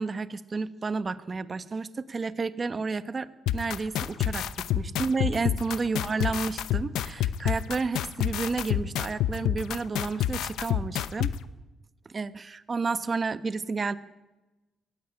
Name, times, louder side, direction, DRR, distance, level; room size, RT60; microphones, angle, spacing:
voice 1, 0.0-11.3 12.0-14.0, right 4 dB, 25° right, 13 dB, 1.0 m, -31 dB
sound 1, 3.5-11.3, left 11 dB, 80° left, 0.8 m, -27 dB
23.0 x 16.0 x 9.9 m, 1.1 s
cardioid pair, 145°, 0 cm